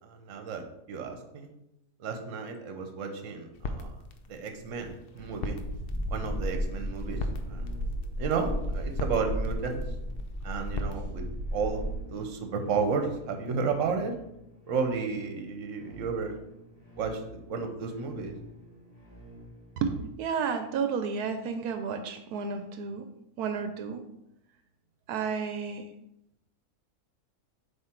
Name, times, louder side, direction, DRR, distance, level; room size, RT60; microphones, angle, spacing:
voice 1, 0.0-1.5 2.0-3.9 4.3-5.6 6.1-7.2 7.5-7.6 8.2-9.9 10.4-11.3 11.5-11.8 12.1-14.2 14.7-16.4 17.0-17.2 17.5-18.3, right 5 dB, 60° right, 5 dB, 1.1 m, -32 dB
sound 1, 3.5-10.9, left 2 dB, 65° left, 0.5 m, -41 dB
sound 2, 5.1-19.9, equal, 25° left, 1.3 m, -50 dB
sound 3, 5.6-12.0, equal, 10° right, 2.2 m, -34 dB
voice 2, 19.8-23.1 23.4-24.0 25.1-25.9, right 6 dB, 85° right, 7 dB, 1.1 m, -31 dB
7.4 x 3.0 x 4.4 m, 0.84 s
omnidirectional pair, 1.6 m